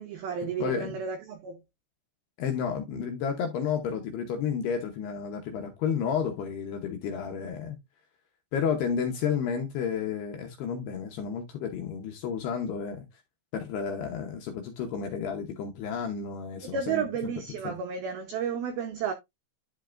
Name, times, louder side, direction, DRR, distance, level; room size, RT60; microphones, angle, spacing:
voice 1, 0.0-1.6 16.7-19.1, right 6 dB, 90° right, 2.1 m, -32 dB
voice 2, 0.6-1.0 2.4-7.8 8.5-13.1 13.5-17.3 17.6-17.7, left 7 dB, 75° left, 2.5 m, -31 dB
11.0 x 5.4 x 2.5 m
omnidirectional pair, 5.8 m